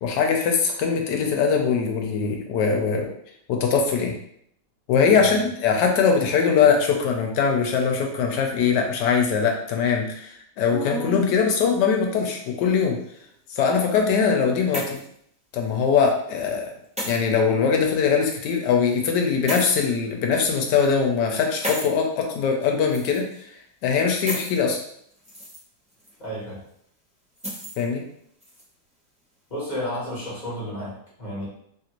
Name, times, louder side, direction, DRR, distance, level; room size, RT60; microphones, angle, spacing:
voice 1, 0.0-3.1 3.5-4.1 4.9-13.0 13.5-15.0 15.5-16.6 17.0-23.3 23.8-24.8 27.8-28.0, left 6 dB, 85° left, 2 dB, 1.2 m, -21 dB
sound 1, 10.7-11.3 12.3-13.0 14.2-15.2 15.6-15.8 17.0-17.2 18.0-18.1 19.5-19.7 20.5-20.9 21.6-21.9 22.9-23.4 24.3-24.6 25.1-25.6 26.0-26.1 27.4-27.8 28.4-28.6, equal, 10° right, 0.4 m, -33 dB
voice 2, 26.2-26.6 29.5-31.5, equal, 30° left, -7 dB, 1.2 m, -32 dB
3.2 x 2.5 x 2.9 m, 0.69 s
omnidirectional pair, 1.8 m